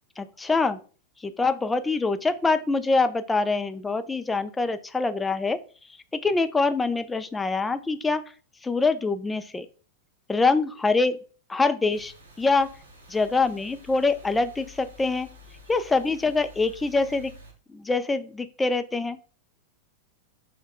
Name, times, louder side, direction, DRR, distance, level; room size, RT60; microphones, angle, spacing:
voice 1, 0.2-0.8 1.2-5.6 6.1-8.2 8.6-9.7 10.3-11.2 11.5-12.7 13.1-15.3 15.7-17.3 17.7-19.2, left 3 dB, 10° left, 10 dB, 0.4 m, -24 dB
sound 1, 11.9-17.5, left 2 dB, 70° right, 1.1 m, -50 dB
4.4 x 2.2 x 4.3 m, 0.38 s
figure-of-eight pair, 90°, 0 cm